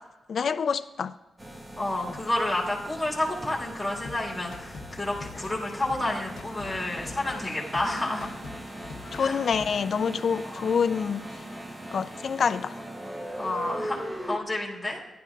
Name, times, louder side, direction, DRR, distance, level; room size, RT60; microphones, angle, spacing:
voice 1, 0.3-1.1 9.1-11.2 11.9-12.7, left 6 dB, 50° left, 0.3 m, -26 dB
sound 1, 1.4-14.4, right 1 dB, 20° right, 0.8 m, -40 dB
voice 2, 1.8-8.4 9.2-9.4 10.5-10.7 13.4-15.0, left 1 dB, ahead, 2.0 m, -30 dB
sound 2, 3.8-9.7, left 5 dB, 90° left, 0.7 m, -44 dB
15.0 x 11.0 x 2.4 m
wide cardioid pair, 160°, 0 cm